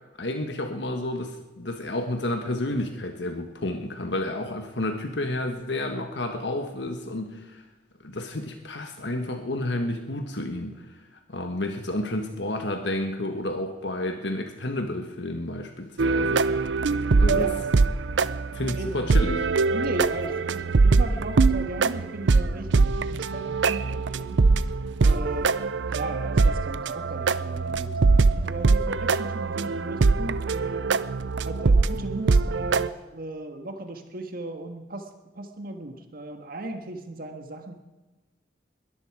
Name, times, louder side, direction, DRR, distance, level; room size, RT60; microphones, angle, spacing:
voice 1, 0.2-7.6 8.0-11.0 11.3-16.4 17.2-17.5 18.5-19.5, left 1 dB, 70° left, 5 dB, 1.5 m, -30 dB
sound 1, 16.0-32.9, right 4 dB, 80° right, 0.6 m, -23 dB
voice 2, 18.7-19.2 19.7-24.4 25.0-25.5 25.9-30.8 31.4-35.1 35.3-37.7, right 2 dB, 55° right, 5 dB, 1.6 m, -36 dB
21.5 x 13.5 x 4.8 m, 1.2 s
head